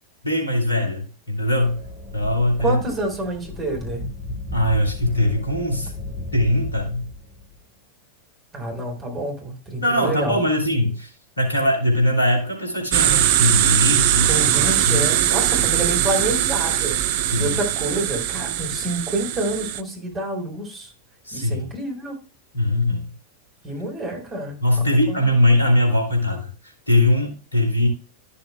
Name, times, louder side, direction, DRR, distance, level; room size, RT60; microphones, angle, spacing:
voice 1, 0.2-1.8 2.1-2.8 4.5-5.9 6.3-7.1 9.8-11.1 11.4-14.4 14.8-15.1 17.3-17.6 21.3-21.7 22.5-23.1 24.6-27.9, left 1 dB, 80° left, 1 dB, 3.1 m, -21 dB
sound 1, 1.4-7.6, left 2 dB, 10° left, 2.3 m, -35 dB
voice 2, 2.6-4.1 8.5-10.4 14.3-17.0 17.4-20.9 21.3-22.2 23.6-25.2, right 2 dB, 20° right, 0 dB, 4.1 m, -28 dB
sound 2, 12.9-19.8, right 12 dB, 50° right, 0.6 m, -21 dB
13.0 x 6.8 x 2.2 m, 0.34 s
figure-of-eight pair, 90°, 0 cm